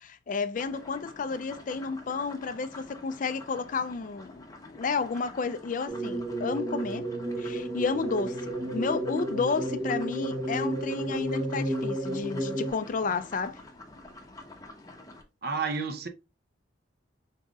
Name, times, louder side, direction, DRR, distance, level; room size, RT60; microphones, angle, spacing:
voice 1, 0.0-7.1 7.4-13.6, left 4 dB, 45° left, 0.4 m, -31 dB
sound 1, 0.5-15.2, left 2 dB, 20° left, 0.8 m, -48 dB
sound 2, 5.9-12.7, right 1 dB, 30° right, 0.9 m, -32 dB
voice 2, 15.4-16.1, right 4 dB, 55° right, 0.7 m, -30 dB
5.4 x 3.7 x 2.3 m
head